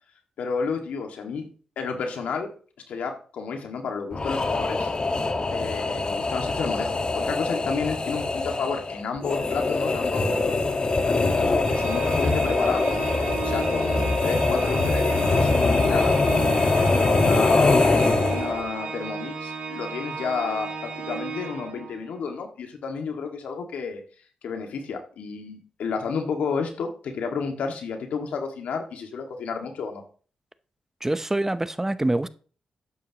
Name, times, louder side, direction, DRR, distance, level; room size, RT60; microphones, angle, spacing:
voice 1, 0.4-1.5 1.8-2.5 2.9-4.9 5.5-10.5 11.1-13.0 13.4-17.8 18.3-24.0 24.4-30.0, left 5 dB, 75° left, 1.9 m, -31 dB
sound 1, 4.1-18.7, left 3 dB, 40° left, 1.6 m, -23 dB
Organ, 11.6-22.2, right 5 dB, 70° right, 3.4 m, -34 dB
voice 2, 31.0-32.3, right 1 dB, 15° right, 0.7 m, -25 dB
12.5 x 9.6 x 3.0 m
supercardioid pair, 50°, 2 cm